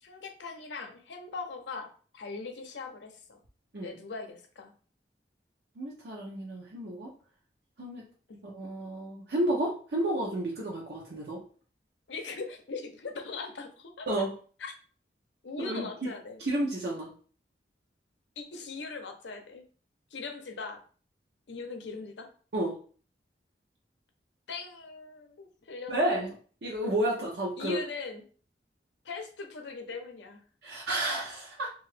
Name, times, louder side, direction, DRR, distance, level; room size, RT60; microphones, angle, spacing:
voice 1, 0.0-3.4 3.8-4.7 8.3-8.4 12.1-14.1 14.6-14.7 15.4-16.4 18.4-19.6 20.1-20.8 21.5-22.3 24.5-26.2 27.6-28.2 29.0-30.4, left 4 dB, 80° left, 5 dB, 0.6 m, -40 dB
voice 2, 5.8-7.1 7.8-8.0 8.4-11.4 14.1-14.3 15.6-16.1 16.4-17.1 22.5-22.7 25.9-26.4 26.6-27.8 30.6-31.7, right 1 dB, 65° right, -2 dB, 0.6 m, -31 dB
2.8 x 2.4 x 3.2 m, 0.41 s
head